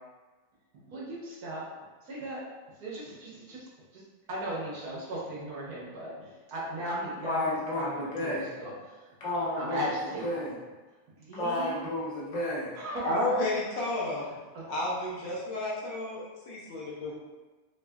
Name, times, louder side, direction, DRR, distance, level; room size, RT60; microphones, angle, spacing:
voice 1, 0.9-1.7 2.0-2.4 2.8-4.0 4.3-9.1 9.6-10.4 11.2-11.7 12.7-13.3 14.5-14.7, right 1 dB, 55° right, -7 dB, 1.2 m, -37 dB
voice 2, 7.2-8.5 9.2-9.9 10.2-10.5 11.4-12.7, left 1 dB, 40° left, -8 dB, 0.7 m, -31 dB
voice 3, 13.0-14.3 14.7-17.1, left 1 dB, 70° left, -5 dB, 1.3 m, -31 dB
4.9 x 2.4 x 2.2 m, 1.2 s
omnidirectional pair, 2.4 m